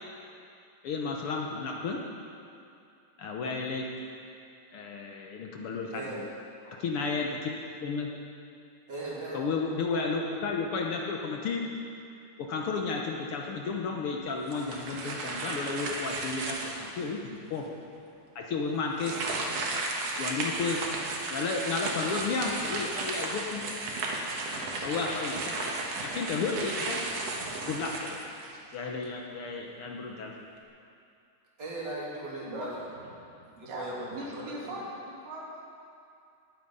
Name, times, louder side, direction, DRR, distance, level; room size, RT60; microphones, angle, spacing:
voice 1, 0.8-2.0 3.2-3.9 4.7-6.3 6.8-7.5 7.8-8.1 9.3-11.6 12.4-17.7 18.3-19.1 20.2-20.8 21.3-23.6 24.8-25.5 26.0-27.0 27.7-28.2 28.7-30.3, left 4 dB, 70° left, 0 dB, 1.3 m, -32 dB
voice 2, 5.9-6.2 6.6-6.8 8.9-9.4 31.6-32.8 33.4-34.7, right 1 dB, 30° right, -6 dB, 3.1 m, -38 dB
sound 1, 14.5-17.0 17.6-17.7 18.9-28.7, right 2 dB, 60° right, 2.2 m, -34 dB
voice 3, 33.3-35.6, right 1 dB, 85° right, -4 dB, 4.0 m, -40 dB
19.5 x 8.7 x 5.5 m, 2.5 s
omnidirectional pair, 3.8 m